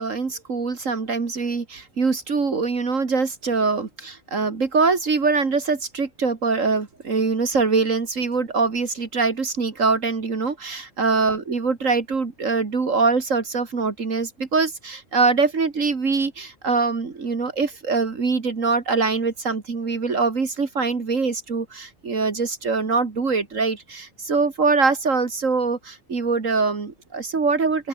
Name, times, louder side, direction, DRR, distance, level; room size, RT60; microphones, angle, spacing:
voice 1, 0.0-27.9, right 4 dB, 75° right, 2.6 m, -23 dB
open air
omnidirectional pair, 1.4 m